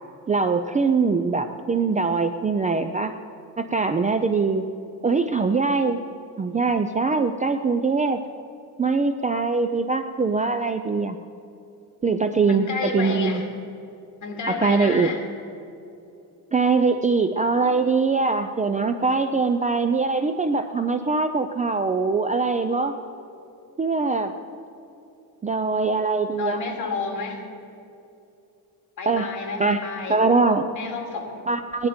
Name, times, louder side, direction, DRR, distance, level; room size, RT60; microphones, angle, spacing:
voice 1, 0.3-3.1 3.6-4.6 5.0-6.0 6.4-8.2 8.8-11.2 12.0-12.7 12.9-13.4 14.5-15.1 16.5-22.9 23.8-24.3 25.4-26.6 29.1-29.3 29.6-29.8 30.1-30.7 31.5-31.9, right 4 dB, 20° right, 8 dB, 0.4 m, -22 dB
voice 2, 12.5-13.5 14.2-15.2 26.4-27.4 29.0-30.2 30.7-31.5, left 4 dB, 45° left, 2 dB, 2.4 m, -30 dB
17.5 x 11.0 x 5.1 m, 2.7 s
cardioid pair, 145°, 40 cm